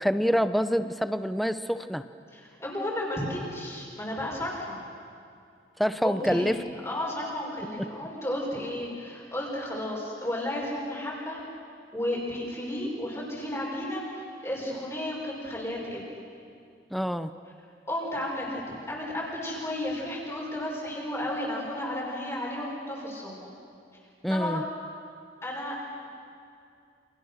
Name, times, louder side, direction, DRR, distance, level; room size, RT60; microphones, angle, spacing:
voice 1, 0.0-2.0 5.8-6.6 7.8-7.9 16.9-17.3 24.2-24.6, equal, ahead, 10 dB, 0.7 m, -26 dB
voice 2, 2.3-4.8 6.0-6.5 6.8-11.4 11.9-16.0 17.9-23.5 24.3-24.6 25.4-25.8, left 1 dB, 15° left, -5 dB, 5.7 m, -33 dB
29.0 x 28.0 x 6.5 m, 2.4 s
head